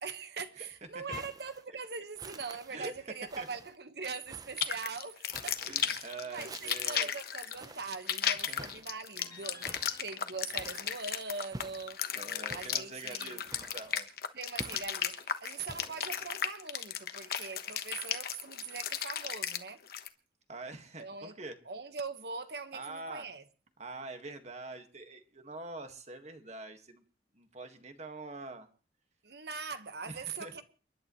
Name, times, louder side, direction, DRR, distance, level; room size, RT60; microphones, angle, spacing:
voice 1, 0.0-6.0 6.3-9.8 10.0-12.0 12.5-13.4 14.3-19.8 21.0-21.4 21.6-23.4 29.2-30.6, right 4 dB, 65° right, 1.3 m, -42 dB
sound 1, 1.1-1.6 2.1-2.7 3.3-3.8 4.3-4.8 5.3-5.8 6.3-7.0 7.5-8.0 8.6-9.0 9.6-10.0 10.5-10.9 11.5-11.9 12.5-12.9 13.4-14.0 14.6-15.1 15.7-16.3, right 2 dB, 20° right, 0.8 m, -49 dB
sound 2, 4.6-20.1, left 9 dB, 60° left, 1.2 m, -35 dB
voice 2, 5.6-7.1 8.5-8.7 9.3-9.8 12.2-14.1 20.5-21.6 22.7-23.3 23.8-27.0 27.3-28.7 30.1-30.5, right 3 dB, 40° right, 1.7 m, -45 dB
sound 3, 9.2-12.3, left 3 dB, 20° left, 1.3 m, -57 dB
29.5 x 11.0 x 3.1 m
head